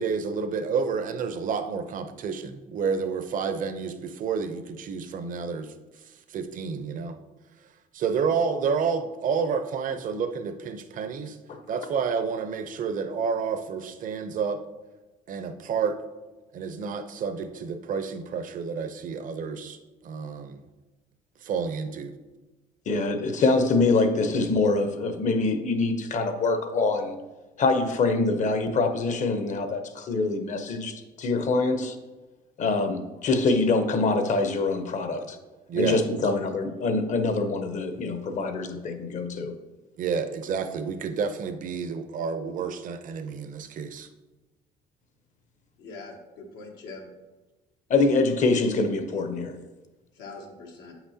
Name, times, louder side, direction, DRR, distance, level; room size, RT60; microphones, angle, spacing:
voice 1, 0.0-5.7 6.3-7.2 7.9-11.4 11.7-14.6 15.3-16.0 16.5-19.8 20.0-20.6 21.4-22.1 35.7-36.2 40.0-44.1, right 6 dB, 50° right, 9 dB, 0.6 m, -29 dB
voice 2, 22.9-27.2 27.6-32.0 32.6-35.4 35.8-39.6 47.9-49.6, left 3 dB, 45° left, 8 dB, 0.7 m, -25 dB
voice 3, 45.8-47.1 48.0-48.2 50.1-50.9, left 3 dB, 90° left, 1 dB, 1.2 m, -41 dB
8.0 x 5.9 x 2.8 m, 1.2 s
cardioid pair, 110°, 17 cm